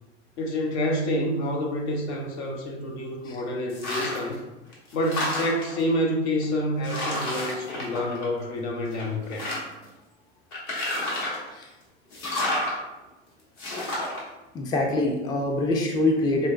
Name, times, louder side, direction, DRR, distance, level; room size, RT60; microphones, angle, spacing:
voice 1, 0.4-4.4 4.9-9.6, left 1 dB, 70° left, 1 dB, 0.8 m, -28 dB
sound 1, 3.7-4.3 4.7-5.8 6.4-6.5 6.8-8.6 8.9-9.8 10.5-11.5 12.1-12.7 13.6-14.2, left 1 dB, 50° left, 1.3 m, -30 dB
voice 2, 14.5-16.5, left 2 dB, 15° left, 2 dB, 0.3 m, -24 dB
4.7 x 2.2 x 2.4 m, 1.1 s
hypercardioid pair, 85°, 35 cm